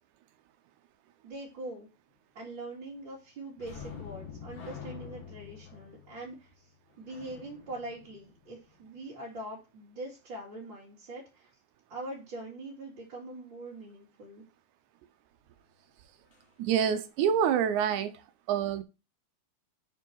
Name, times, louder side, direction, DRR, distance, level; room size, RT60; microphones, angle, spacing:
voice 1, 1.2-1.9 2.3-6.7 7.0-11.5 11.9-14.4, right 2 dB, 40° right, 2.4 m, -43 dB
sound 1, 3.6-9.0 16.3-16.5 16.8-17.0, left 7 dB, 50° left, 1.7 m, -47 dB
voice 2, 16.6-18.1 18.5-18.8, right 8 dB, 85° right, 2.0 m, -26 dB
6.0 x 4.6 x 4.5 m
omnidirectional pair, 3.6 m